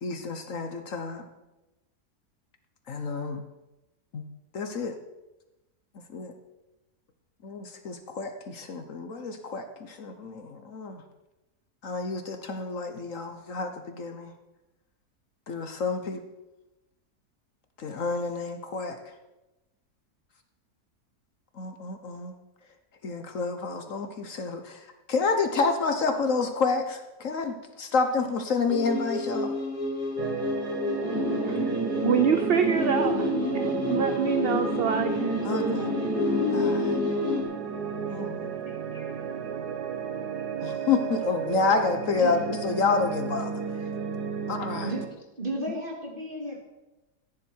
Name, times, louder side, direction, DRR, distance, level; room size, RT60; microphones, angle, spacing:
voice 1, 0.0-1.2 2.9-3.4 4.1-4.2 4.5-4.9 6.1-6.3 7.4-11.0 11.8-14.3 15.5-16.2 17.8-19.0 21.6-22.3 23.0-29.5 35.4-35.9 36.5-37.0 38.1-38.6 38.9-39.1 40.6-43.6 44.5-44.9, left 4 dB, 60° left, 7 dB, 1.4 m, -29 dB
sound 1, 28.7-37.4, left 1 dB, 80° left, 3.5 m, -28 dB
sound 2, 30.2-45.1, right 7 dB, 85° right, 1.6 m, -33 dB
voice 2, 32.0-35.8, right 7 dB, 50° right, 7 dB, 0.7 m, -26 dB
voice 3, 45.4-46.6, right 1 dB, 35° right, -1 dB, 3.0 m, -33 dB
14.5 x 10.5 x 4.6 m, 1.0 s
omnidirectional pair, 1.6 m